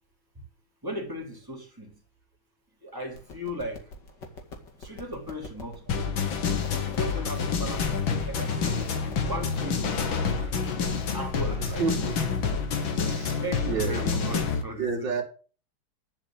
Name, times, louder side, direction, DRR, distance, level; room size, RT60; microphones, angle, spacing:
voice 1, 0.8-1.9 2.9-3.8 4.9-6.2 6.7-7.8 8.3-8.9 9.3-10.2 11.1-11.8 13.4-15.2, equal, 10° right, 3.5 m, -36 dB
sound 1, 3.1-9.6, left 3 dB, 65° left, 2.9 m, -45 dB
sound 2, 5.9-14.6, left 5 dB, 85° left, 2.4 m, -28 dB
voice 2, 11.6-12.3 12.9-13.4 13.6-14.1 14.8-15.2, right 5 dB, 65° right, 3.1 m, -30 dB
11.5 x 5.9 x 7.8 m
omnidirectional pair, 2.1 m